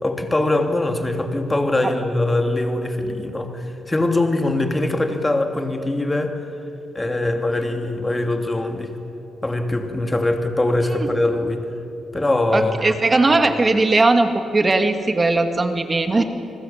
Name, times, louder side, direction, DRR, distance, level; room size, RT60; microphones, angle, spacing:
voice 1, 0.0-6.4 6.9-8.9 9.4-11.6 12.1-12.9, left 2 dB, 15° left, 5 dB, 2.9 m, -22 dB
voice 2, 12.5-16.2, right 2 dB, 30° right, 7 dB, 2.4 m, -18 dB
29.5 x 20.5 x 9.0 m, 2.9 s
cardioid pair, 80°, 0 cm